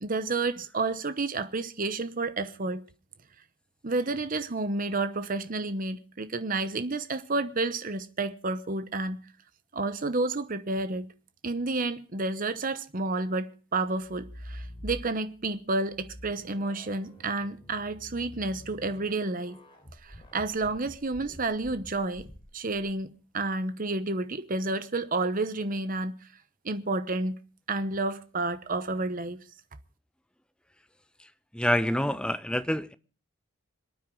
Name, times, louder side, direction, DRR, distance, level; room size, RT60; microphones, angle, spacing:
voice 1, 0.0-2.8 3.8-9.2 9.7-11.1 11.4-19.6 20.0-22.3 22.5-26.1 26.6-27.3 27.7-29.4, right 3 dB, 45° right, 0.9 m, -30 dB
sound 1, 14.0-15.4 15.9-22.9, equal, 25° left, 3.8 m, -46 dB
voice 2, 31.5-32.9, equal, 5° left, 0.6 m, -27 dB
26.5 x 9.3 x 3.8 m
head